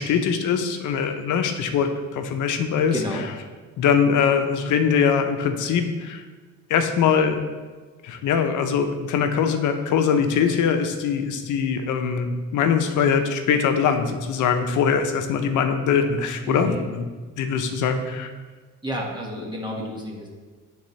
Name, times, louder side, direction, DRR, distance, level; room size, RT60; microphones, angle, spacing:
voice 1, 0.0-2.9 3.8-6.2 6.7-7.4 8.0-17.1 17.4-18.3, left 6 dB, 80° left, 7 dB, 0.7 m, -22 dB
voice 2, 2.9-3.2 16.4-16.8 18.8-20.3, equal, 15° right, -2 dB, 1.6 m, -30 dB
9.9 x 3.7 x 3.2 m, 1.4 s
cardioid pair, 90°, 30 cm